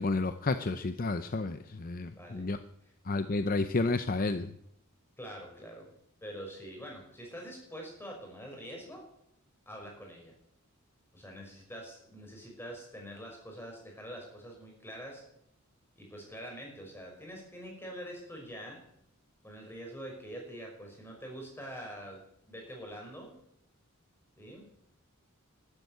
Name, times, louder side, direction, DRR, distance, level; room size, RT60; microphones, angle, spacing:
voice 1, 0.0-2.6 3.0-4.5, left 3 dB, 40° left, 10 dB, 0.7 m, -31 dB
voice 2, 2.1-2.5 5.2-5.9 6.2-9.1 9.7-10.3 11.1-15.2 16.0-18.8 19.4-22.2 22.5-23.3 24.4-24.7, equal, 10° left, 0 dB, 5.8 m, -45 dB
12.5 x 12.0 x 9.4 m, 0.75 s
head